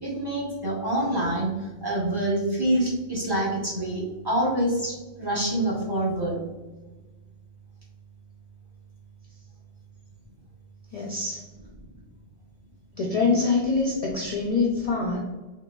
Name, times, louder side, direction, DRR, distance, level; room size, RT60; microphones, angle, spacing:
voice 1, 0.0-6.4, right 1 dB, 25° right, -5 dB, 0.6 m, -26 dB
voice 2, 10.9-11.4 12.9-15.2, left 4 dB, 50° left, -3 dB, 0.4 m, -24 dB
3.8 x 2.6 x 2.2 m, 1.2 s
omnidirectional pair, 1.1 m